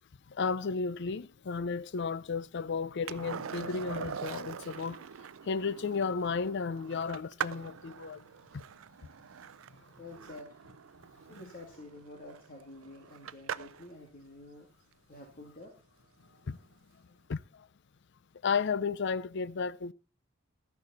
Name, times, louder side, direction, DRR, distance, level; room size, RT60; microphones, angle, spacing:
voice 1, 0.3-5.0 5.4-8.2 8.5-8.6 11.4-11.5 16.5-16.6 17.3-17.7 18.4-19.9, left 5 dB, 60° left, 0.5 m, -33 dB
Skateboard, 3.1-13.9 16.5-16.6, right 7 dB, 80° right, 0.5 m, -43 dB
voice 2, 10.0-10.5 11.3-14.7 15.1-15.7, left 2 dB, 45° left, 2.4 m, -49 dB
13.5 x 10.5 x 4.2 m
head